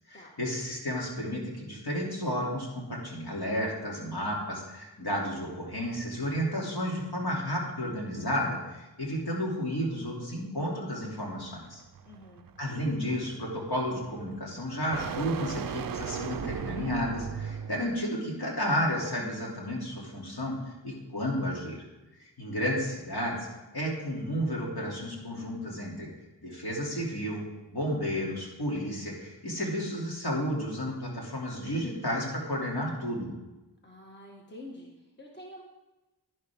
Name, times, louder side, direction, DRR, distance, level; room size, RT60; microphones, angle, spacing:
voice 1, 0.1-11.8 12.6-21.8 22.4-23.5 23.7-26.1 26.4-33.3, equal, 60° left, -3 dB, 2.8 m, -32 dB
sound 1, 11.0-18.1, right 8 dB, 55° right, 0.4 m, -38 dB
voice 2, 12.0-12.5 33.8-34.9 35.2-35.6, left 1 dB, 25° left, -1 dB, 1.6 m, -47 dB
10.5 x 10.5 x 3.6 m, 1.1 s
wide cardioid pair, 70°, 42 cm